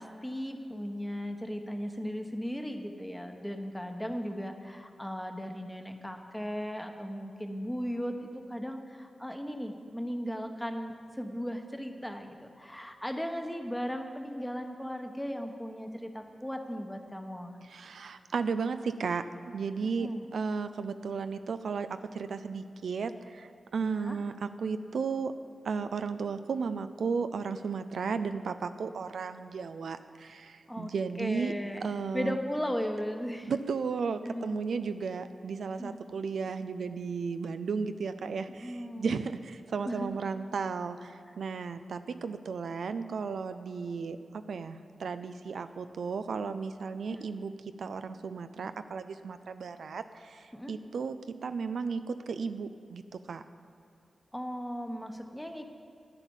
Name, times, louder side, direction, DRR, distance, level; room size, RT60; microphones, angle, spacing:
voice 1, 0.0-17.6 20.0-20.2 23.8-24.2 30.7-30.9 31.2-31.9 32.1-33.5 34.2-34.6 35.8-36.0 38.5-39.1 39.8-40.1 47.1-47.2 50.5-50.7 54.3-55.7, equal, 10° left, 5 dB, 1.3 m, -37 dB
voice 2, 17.7-31.5 31.8-32.4 33.5-47.5 47.8-53.4, right 5 dB, 85° right, 10 dB, 0.4 m, -34 dB
10.5 x 9.2 x 7.2 m, 2.5 s
cardioid pair, 55°, 0 cm